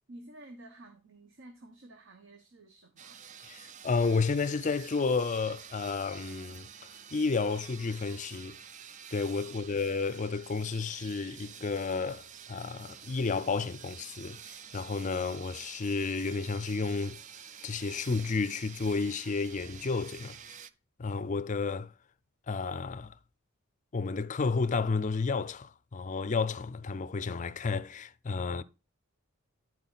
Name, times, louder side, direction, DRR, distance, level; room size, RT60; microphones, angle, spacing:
voice 1, 0.1-3.2 9.4-9.7, right 1 dB, 60° right, 1.0 m, -52 dB
sound 1, 3.0-20.7, right 8 dB, 35° right, 0.4 m, -49 dB
voice 2, 3.4-6.7 7.1-8.6 9.1-17.2 17.6-20.5 21.0-21.9 22.5-23.1 23.9-28.6, left 4 dB, 35° left, 0.4 m, -31 dB
11.0 x 4.6 x 4.0 m
head